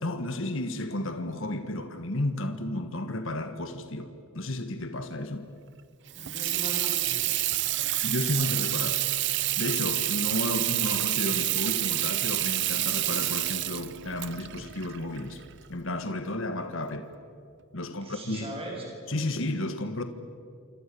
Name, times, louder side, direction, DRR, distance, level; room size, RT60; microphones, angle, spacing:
voice 1, 0.0-5.5 8.0-9.0 9.6-15.4 15.7-17.1 17.7-18.5 19.1-20.0, left 1 dB, 60° left, 8 dB, 1.6 m, -32 dB
voice 2, 6.0-7.3 17.7-18.9, right 1 dB, 25° right, -1 dB, 6.9 m, -40 dB
Water tap faucet / Sink (filling or washing), 6.1-15.7, right 16 dB, 50° right, 0.8 m, -28 dB
28.0 x 27.0 x 7.0 m, 2.4 s
head